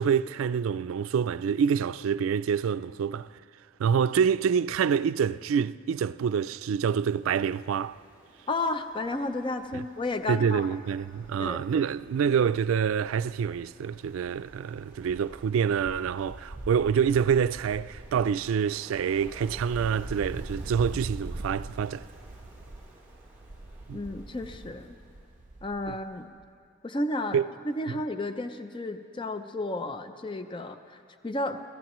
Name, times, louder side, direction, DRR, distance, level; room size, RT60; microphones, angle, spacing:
voice 1, 0.0-3.3 3.8-8.0 9.7-9.8 10.3-22.0 23.9-24.0 25.9-26.0 27.3-27.5 27.9-28.0, right 7 dB, 90° right, 0.3 m, -26 dB
Ocean, 6.4-25.5, right 1 dB, 10° right, 2.3 m, -56 dB
voice 2, 8.5-10.7 11.4-11.6 23.9-25.0 25.6-26.3 26.8-31.7, left 2 dB, 25° left, 0.5 m, -32 dB
Wind, 9.1-9.4 9.7-9.8 10.1-13.7 14.0-26.1 26.4-26.5, right 2 dB, 40° right, 0.6 m, -43 dB
28.0 x 16.0 x 3.0 m
head